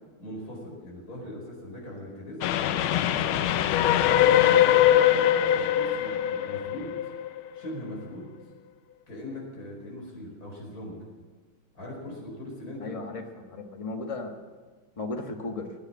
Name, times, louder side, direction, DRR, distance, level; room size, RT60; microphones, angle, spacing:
voice 1, 0.2-2.5 2.9-3.7 4.2-7.0 7.5-8.3 9.1-11.0 11.7-13.0, left 1 dB, 45° left, -2 dB, 5.2 m, -40 dB
Train, 2.4-7.7, left 11 dB, 85° left, 1.5 m, -22 dB
voice 2, 12.8-14.4 15.0-15.7, left 3 dB, 20° left, 3 dB, 1.2 m, -35 dB
17.0 x 9.8 x 7.5 m, 1.4 s
omnidirectional pair, 2.3 m